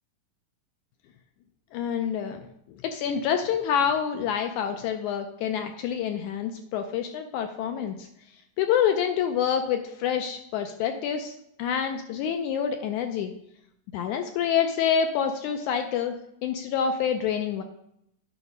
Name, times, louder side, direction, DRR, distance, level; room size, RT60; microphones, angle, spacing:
voice 1, 1.7-2.5 2.8-8.1 8.6-11.3 11.6-13.3 13.9-16.2 16.4-17.6, left 8 dB, 80° left, 6 dB, 1.7 m, -27 dB
9.3 x 3.9 x 5.4 m, 0.76 s
omnidirectional pair, 3.9 m